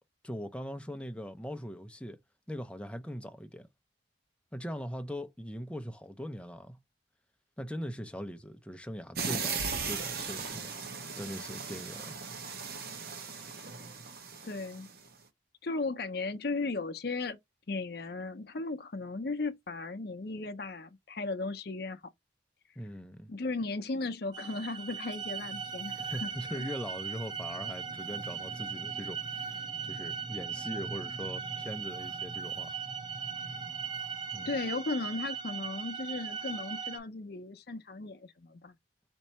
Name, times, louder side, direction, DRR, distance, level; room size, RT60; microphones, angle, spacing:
voice 1, 0.2-2.2 2.5-3.7 4.5-6.8 7.6-10.7 11.2-12.2 22.8-23.3 26.0-32.8 34.3-34.5, equal, 5° left, 0.5 m, -41 dB
sound 1, 9.2-15.1, right 5 dB, 50° right, 0.9 m, -37 dB
voice 2, 14.4-14.9 15.6-17.4 17.7-22.0 23.3-26.3 26.6-26.7 34.5-38.8, left 3 dB, 55° left, 0.6 m, -36 dB
sound 2, 24.3-37.0, right 6 dB, 25° right, 0.8 m, -38 dB
4.4 x 2.8 x 4.1 m
head